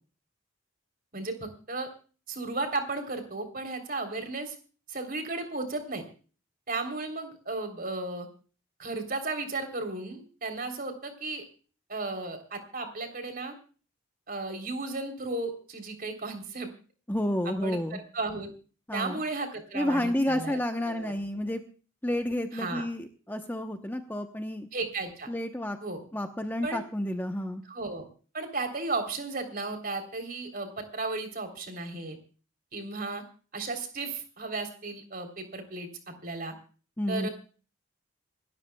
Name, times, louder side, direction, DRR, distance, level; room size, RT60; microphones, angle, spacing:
voice 1, 1.1-1.9 2.3-4.5 4.9-6.0 6.7-8.3 8.8-11.4 11.9-13.5 14.3-16.7 17.4-18.5 18.9-20.6 20.8-21.1 22.5-22.9 24.7-25.3 25.8-26.0 26.6-26.8 27.6-28.1 28.3-32.2 32.7-33.2 33.5-36.5 37.1-37.3, right 3 dB, 45° right, 6 dB, 3.5 m, -34 dB
voice 2, 17.1-18.0 18.9-19.2 19.7-21.6 22.0-24.7 25.3-25.8 26.1-27.6 37.0-37.3, left 1 dB, 10° left, 6 dB, 0.9 m, -30 dB
27.5 x 13.0 x 2.3 m, 0.38 s
head